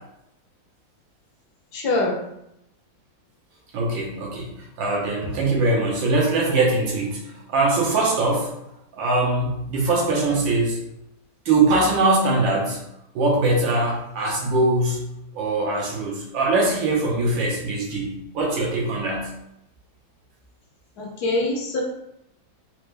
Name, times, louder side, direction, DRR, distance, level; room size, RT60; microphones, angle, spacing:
voice 1, 1.7-2.2 21.0-21.8, left 2 dB, 65° left, 0 dB, 1.2 m, -24 dB
voice 2, 3.7-4.5 4.8-7.2 7.5-8.5 8.9-10.8 11.4-12.8 13.1-19.3, right 2 dB, 80° right, -2 dB, 1.6 m, -22 dB
4.3 x 2.5 x 3.2 m, 0.82 s
omnidirectional pair, 2.1 m